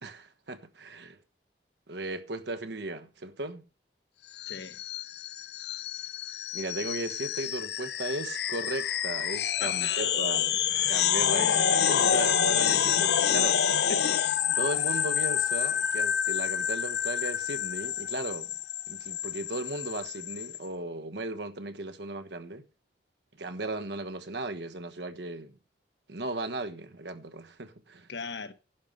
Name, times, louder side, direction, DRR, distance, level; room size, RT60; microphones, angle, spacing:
voice 1, 0.0-1.2 1.9-3.7 6.5-10.6 10.9-13.6 14.6-18.5 18.9-22.6 23.4-25.5 26.1-28.1, right 2 dB, 85° right, 1.3 m, -36 dB
sound 1, 4.4-20.6, left 8 dB, 70° left, 0.6 m, -28 dB
voice 2, 4.5-4.8 9.6-10.3 11.3-11.8 13.9-14.2 14.9-15.0 28.1-28.5, left 4 dB, 90° left, 1.2 m, -38 dB
11.0 x 5.4 x 7.5 m
head